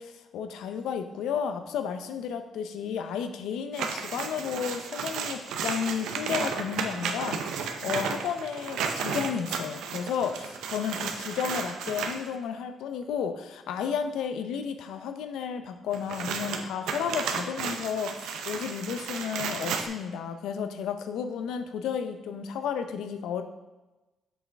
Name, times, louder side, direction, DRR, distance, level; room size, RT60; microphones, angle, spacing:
voice 1, 0.0-23.4, left 7 dB, 85° left, 8 dB, 0.6 m, -32 dB
sound 1, 3.7-12.3 15.9-19.9, right 6 dB, 85° right, 0.7 m, -33 dB
7.4 x 6.1 x 3.5 m, 1.1 s
cardioid pair, 90°, 0 cm